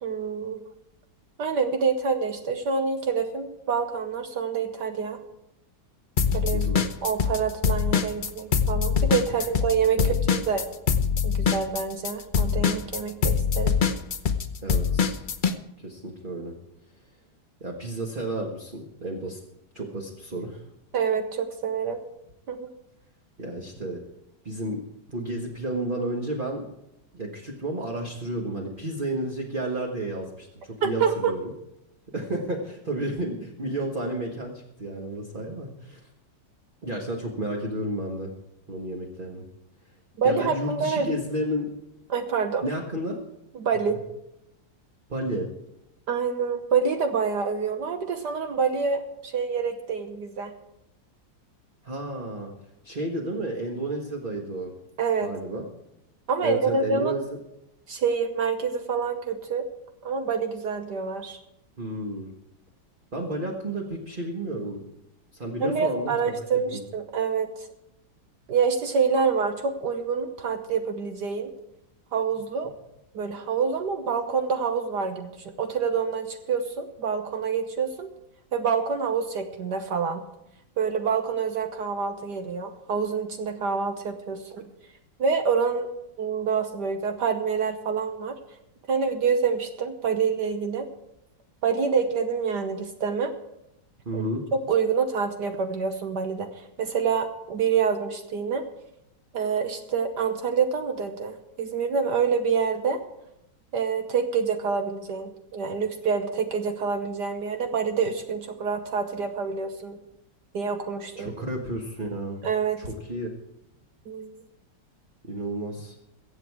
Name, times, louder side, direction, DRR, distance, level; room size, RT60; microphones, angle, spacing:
voice 1, 0.0-0.6 1.4-5.2 6.3-10.6 11.2-13.8 20.9-22.0 22.5-22.7 30.8-31.3 40.2-41.1 42.1-42.7 43.5-44.0 46.1-50.5 55.0-55.3 56.3-57.2 57.9-59.6 60.0-61.4 65.6-67.7 68.5-71.5 72.1-72.7 73.1-78.1 78.5-80.2 80.8-84.7 85.2-85.9 86.2-88.3 88.9-90.9 91.6-93.3 94.1-94.2 94.5-98.6 99.3-103.0 103.7-110.0 110.5-111.3 112.4-112.8 114.1-114.3, right 5 dB, 65° right, 6 dB, 1.5 m, -27 dB
sound 1, 6.2-7.4 7.6-15.5, left 6 dB, 55° left, 0.5 m, -23 dB
voice 2, 6.5-6.8 9.3-9.4 10.0-10.1 14.6-15.2 15.8-16.5 17.6-19.4 19.7-20.6 23.4-24.0 24.4-24.8 25.1-26.7 27.1-31.5 32.1-36.0 36.8-38.3 38.7-39.4 40.2-41.7 42.6-43.2 45.1-45.5 51.8-52.5 52.8-54.7 55.2-55.6 56.4-57.2 61.8-62.3 63.1-64.8 65.3-66.5 66.7-66.8 94.0-94.4 111.1-112.4 112.8-113.3 115.3-115.9, right 1 dB, 30° right, 0 dB, 1.6 m, -32 dB
23.0 x 8.0 x 4.8 m, 0.87 s
omnidirectional pair, 2.0 m